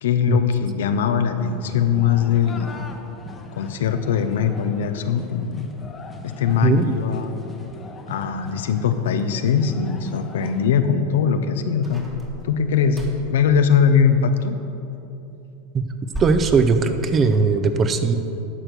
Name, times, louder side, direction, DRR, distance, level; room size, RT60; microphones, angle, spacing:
voice 1, 0.0-2.7 3.5-5.7 6.2-7.3 8.1-12.1 12.4-14.6, left 7 dB, 80° left, 8 dB, 0.7 m, -21 dB
sound 1, 1.4-10.7, left 3 dB, 20° left, 0.9 m, -40 dB
voice 2, 6.6-6.9 15.7-15.9 16.2-18.2, right 4 dB, 30° right, 8 dB, 0.7 m, -19 dB
sound 2, 11.8-13.4 15.8-17.5, right 1 dB, 15° right, 1.4 m, -34 dB
11.0 x 4.5 x 6.6 m, 2.9 s
hypercardioid pair, 115°, 0 cm